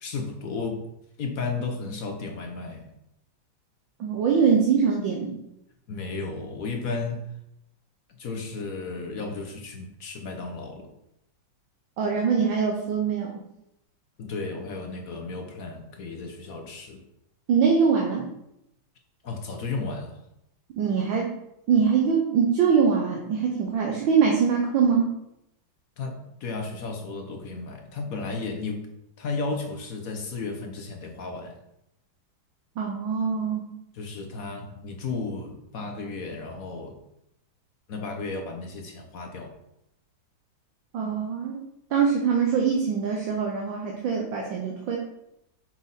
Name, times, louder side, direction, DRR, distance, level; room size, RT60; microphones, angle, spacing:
voice 1, 0.0-0.8 1.2-2.9 5.9-7.3 8.2-10.9 14.2-17.0 19.2-20.2 26.0-28.9 29.2-31.6 33.9-37.0 37.9-39.6, left 3 dB, 55° left, 3 dB, 1.1 m, -34 dB
voice 2, 4.0-5.3 12.0-13.3 17.5-18.2 20.8-21.3 21.7-25.1 32.8-33.6 40.9-41.6 41.9-45.0, right 6 dB, 80° right, -1 dB, 1.7 m, -23 dB
6.1 x 5.6 x 4.1 m, 0.83 s
omnidirectional pair, 2.1 m